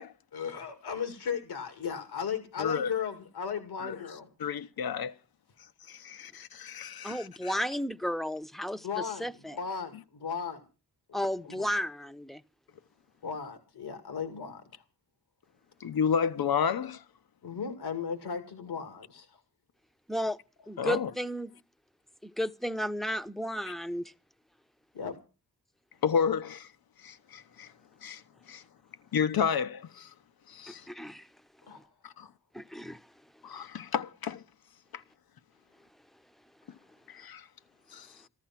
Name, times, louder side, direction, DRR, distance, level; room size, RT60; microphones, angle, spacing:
voice 1, 0.3-4.3 8.8-9.2 9.5-10.6 11.1-11.2 11.4-11.8 13.2-14.8 17.4-19.4 24.9-25.2 31.7-31.9, left 6 dB, 90° left, 2.3 m, -36 dB
voice 2, 2.6-2.9 3.8-4.0 4.4-5.1 5.9-7.6 15.8-17.0 20.8-21.1 26.0-26.7 27.0-27.7 28.0-28.2 28.5-28.6 29.1-30.1 30.5-30.9 32.0-32.3 33.4-34.4 34.9-35.0 37.1-37.4 37.9-38.1, left 7 dB, 70° left, 1.0 m, -31 dB
voice 3, 7.0-8.8 9.2-9.3 11.1-12.4 20.1-20.4 20.7-21.5 22.4-24.1 30.9-31.2 32.5-33.0, equal, ahead, 0.9 m, -33 dB
14.0 x 13.0 x 5.9 m
supercardioid pair, 40°, 37 cm